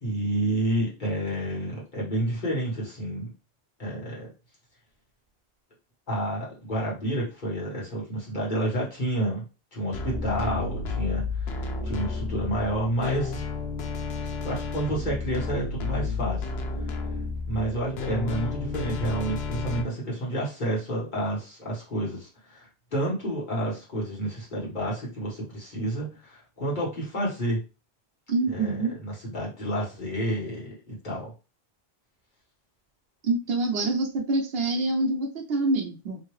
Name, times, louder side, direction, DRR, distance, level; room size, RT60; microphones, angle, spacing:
voice 1, 0.0-3.3 3.8-4.3 6.1-9.4 9.7-13.4 14.2-16.5 17.5-27.6 28.5-31.3, right 1 dB, 50° left, -5 dB, 1.6 m, -30 dB
sound 1, 9.9-19.8, left 4 dB, 90° left, 0.9 m, -32 dB
voice 2, 28.3-28.9 33.2-36.2, right 2 dB, 70° right, 2 dB, 0.9 m, -26 dB
3.1 x 2.7 x 3.1 m, 0.31 s
omnidirectional pair, 1.0 m